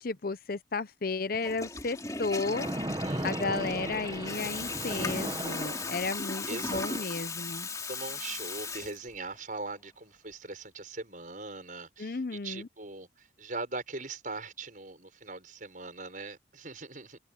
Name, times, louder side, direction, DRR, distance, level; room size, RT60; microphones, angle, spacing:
voice 1, 0.0-2.7 3.2-7.7 12.0-12.7, left 3 dB, 50° left, 0.7 m, -33 dB
Water tap faucet / Toilet flush, 1.3-9.4, left 3 dB, 20° left, 3.4 m, -37 dB
Splash splatter, 2.4-6.4, right 1 dB, 20° right, 1.1 m, -36 dB
voice 2, 3.0-3.8 6.5-7.6 7.9-17.2, right 3 dB, 45° right, 6.7 m, -41 dB
head